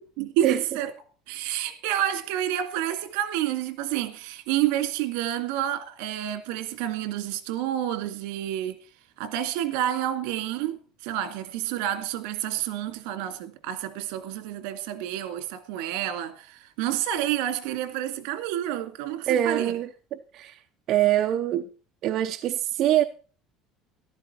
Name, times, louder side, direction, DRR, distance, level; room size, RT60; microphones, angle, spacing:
voice 1, 0.2-0.9 1.3-8.8 9.2-19.7, right 12 dB, 75° right, 2.0 m, -29 dB
voice 2, 19.3-19.9 20.3-20.6 20.9-21.7 22.0-23.0, right 12 dB, 40° right, 0.7 m, -23 dB
14.0 x 12.0 x 4.4 m
cardioid pair, 170°, 0 cm